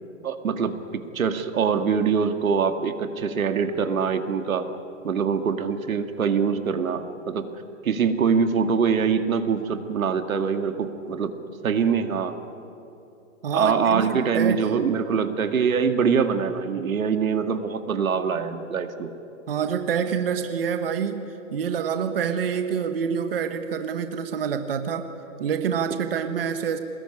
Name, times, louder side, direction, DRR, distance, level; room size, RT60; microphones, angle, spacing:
voice 1, 0.2-4.7 5.0-7.5 7.8-11.3 11.6-12.3 13.5-19.1, right 6 dB, 85° right, 7 dB, 2.2 m, -24 dB
voice 2, 13.4-14.6 19.5-25.1 25.4-26.8, right 7 dB, 45° right, 8 dB, 1.3 m, -27 dB
23.0 x 20.5 x 9.9 m, 2.8 s
hypercardioid pair, 180°, 40 cm